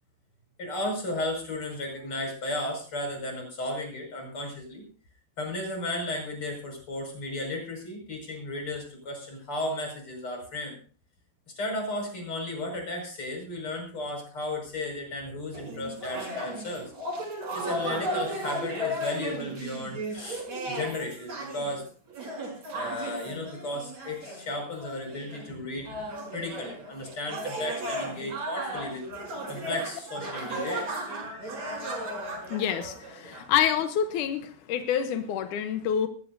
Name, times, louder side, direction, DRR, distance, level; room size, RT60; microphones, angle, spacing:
voice 1, 0.6-4.8 5.4-10.8 11.6-16.9 17.5-21.9 22.7-29.0 29.5-31.0, left 1 dB, 30° left, 2 dB, 6.3 m, -34 dB
sound 1, 15.5-25.5 25.9-33.4, right 1 dB, 40° right, 6.4 m, -35 dB
voice 2, 32.5-36.1, left 9 dB, 80° left, 8 dB, 1.8 m, -27 dB
21.0 x 16.0 x 2.7 m, 0.41 s
omnidirectional pair, 4.8 m